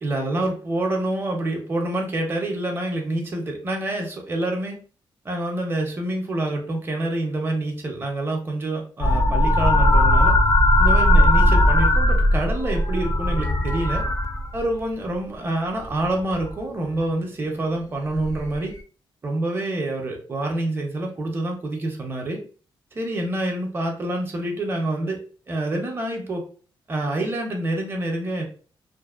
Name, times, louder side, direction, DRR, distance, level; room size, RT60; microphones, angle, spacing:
voice 1, 0.0-4.8 5.2-10.3 10.8-14.0 14.5-18.7 19.2-22.4 22.9-25.2 25.5-26.4 26.9-28.5, right 1 dB, 25° right, 1 dB, 0.6 m, -27 dB
sound 1, 9.0-14.8 16.0-16.5 18.2-18.4, left 1 dB, 40° left, 0.4 m, -18 dB
2.5 x 2.0 x 2.4 m, 0.40 s
cardioid pair, 125°, 9 cm